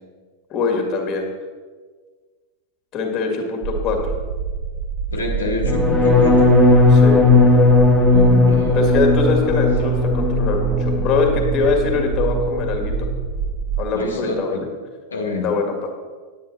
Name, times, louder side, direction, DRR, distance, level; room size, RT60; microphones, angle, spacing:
voice 1, 0.5-1.3 2.9-4.1 6.9-7.3 8.7-12.9 13.8-14.7 15.4-15.7, left 4 dB, 35° left, 3 dB, 2.0 m, -22 dB
sound 1, 3.6-13.8, right 6 dB, 40° right, 2.1 m, -26 dB
voice 2, 5.1-6.6 8.1-8.9 13.9-14.6 15.1-15.5, left 2 dB, 75° left, 0 dB, 1.3 m, -26 dB
sound 2, 5.6-11.5 11.8-12.3 12.6-13.0, left 2 dB, ahead, 1.7 m, -16 dB
9.7 x 9.6 x 4.2 m, 1.4 s
figure-of-eight pair, 90°, 0 cm